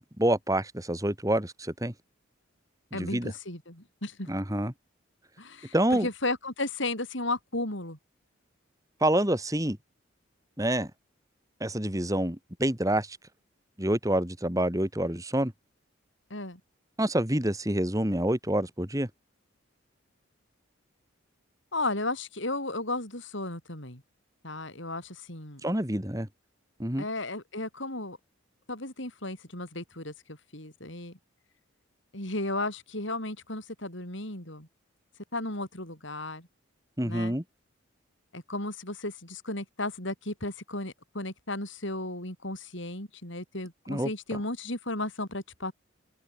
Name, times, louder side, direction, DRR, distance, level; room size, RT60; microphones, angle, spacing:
voice 1, 0.0-1.9 2.9-3.3 4.3-4.7 5.7-6.1 9.0-9.8 10.6-10.9 11.6-13.2 13.8-15.5 17.0-19.1 25.6-26.3 26.8-27.0 37.0-37.4 43.9-44.1, right 1 dB, 15° right, 2.3 m, -27 dB
voice 2, 2.9-4.3 5.4-8.0 16.3-16.6 21.7-24.0 24.4-25.6 27.0-28.2 28.7-31.2 32.1-34.7 35.3-36.5 37.0-37.3 38.3-45.7, left 2 dB, 65° left, 7.6 m, -34 dB
open air
head